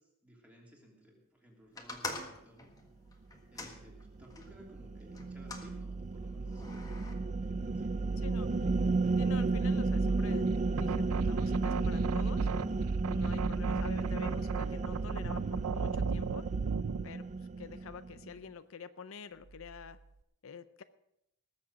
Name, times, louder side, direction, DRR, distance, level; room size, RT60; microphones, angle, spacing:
voice 1, 0.0-2.8 3.5-8.2, equal, 5° right, -1 dB, 3.0 m, -58 dB
sound 1, 1.8-4.5 5.1-5.7 6.5-7.1, left 2 dB, 15° left, 1.5 m, -44 dB
sound 2, 3.8-18.3, right 3 dB, 35° right, 0.4 m, -33 dB
voice 2, 8.2-8.5 9.2-10.5 10.8-12.5 13.1-16.5 17.0-20.0 20.4-20.8, left 6 dB, 65° left, 13 dB, 0.6 m, -47 dB
sound 3, 10.5-17.1, right 5 dB, 85° right, 0.5 m, -35 dB
19.5 x 7.4 x 6.2 m, 0.81 s
head